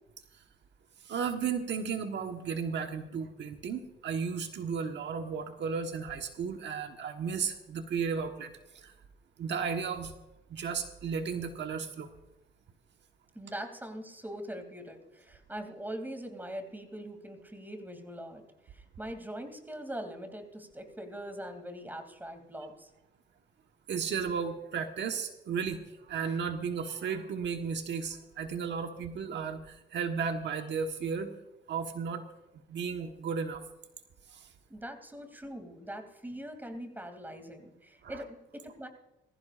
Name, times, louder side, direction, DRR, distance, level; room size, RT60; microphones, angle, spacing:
voice 1, 1.0-8.9 9.4-10.1 10.5-12.1 23.9-31.3 31.7-32.2 32.7-33.6 34.3-34.5 38.0-38.2, right 6 dB, 65° right, 5 dB, 1.3 m, -34 dB
voice 2, 13.3-22.9 34.7-38.9, equal, 10° right, 6 dB, 2.8 m, -42 dB
20.5 x 15.5 x 2.5 m, 0.99 s
cardioid pair, 90°, 20 cm